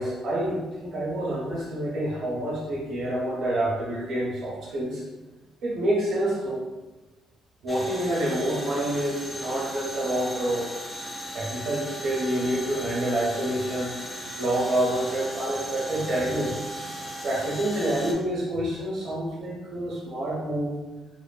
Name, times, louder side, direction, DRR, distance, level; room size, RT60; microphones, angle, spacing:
voice 1, 0.0-5.0 5.6-6.6 7.6-10.7 11.3-13.9 14.4-16.6 17.2-20.7, right 1 dB, 60° right, -5 dB, 0.6 m, -27 dB
sound 1, 7.7-18.1, equal, 15° left, 0.3 m, -37 dB
2.9 x 2.1 x 2.2 m, 1.2 s
cardioid pair, 150°, 0 cm